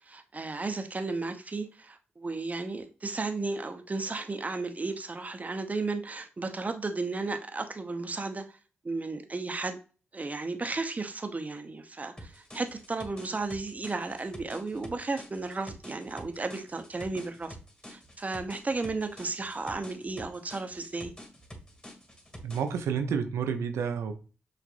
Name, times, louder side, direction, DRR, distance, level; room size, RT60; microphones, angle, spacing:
voice 1, 0.1-8.6 8.8-9.8 10.1-17.6 17.9-21.1, right 3 dB, 35° right, 0.7 m, -34 dB
sound 1, 12.2-22.8, equal, 20° left, 1.9 m, -48 dB
voice 2, 22.4-24.1, right 6 dB, 85° right, 0.6 m, -30 dB
6.2 x 2.5 x 2.5 m
supercardioid pair, 45°, 5 cm